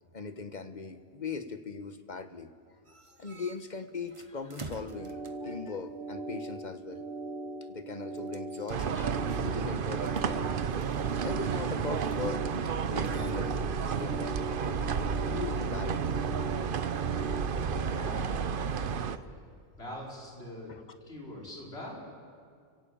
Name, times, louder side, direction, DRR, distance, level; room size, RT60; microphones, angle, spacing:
voice 1, 0.1-2.5 2.9-7.1 7.7-10.7 11.2-12.4 12.8-16.1 16.9-17.3 20.7-20.8, left 4 dB, 45° left, 10 dB, 1.2 m, -40 dB
sound 1, 2.9-5.6 8.2-9.8 10.0-12.8 13.0-16.4, right 3 dB, 30° right, 1.0 m, -51 dB
sound 2, 4.7-17.5, right 3 dB, 80° right, 2.1 m, -40 dB
sound 3, 8.7-19.2, right 6 dB, 55° right, 0.9 m, -31 dB
voice 2, 17.2-18.6 18.8-19.4 19.8-20.7 21.0-22.0, left 1 dB, 75° left, -3 dB, 5.5 m, -43 dB
30.0 x 16.0 x 8.6 m, 2.1 s
omnidirectional pair, 1.1 m